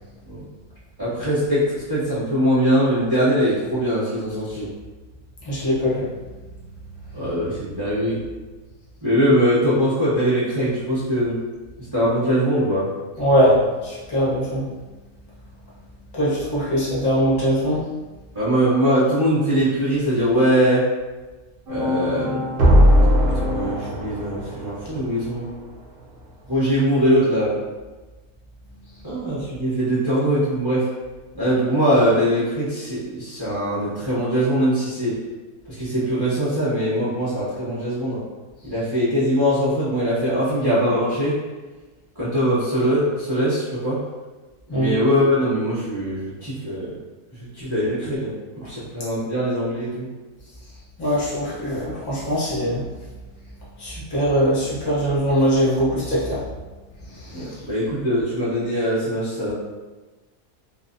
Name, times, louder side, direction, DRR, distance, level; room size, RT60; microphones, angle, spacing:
voice 1, 1.0-4.7 7.1-8.2 9.0-11.4 11.9-12.9 18.3-20.8 21.7-22.4 23.3-25.5 26.5-27.5 29.0-30.9 31.3-35.2 35.7-38.2 38.6-41.3 42.2-44.0 44.7-46.9 47.5-48.3 48.6-50.1 57.3-59.5, equal, 20° right, -12 dB, 0.7 m, -21 dB
voice 2, 5.4-6.0 13.2-14.6 16.1-17.8 44.7-44.9 51.0-52.8 53.8-56.4 57.2-57.5, equal, 35° left, -8 dB, 0.4 m, -21 dB
sound 1, 21.7-24.9, equal, 65° right, 0.5 m, -18 dB
2.5 x 2.1 x 2.5 m, 1.2 s
omnidirectional pair, 1.6 m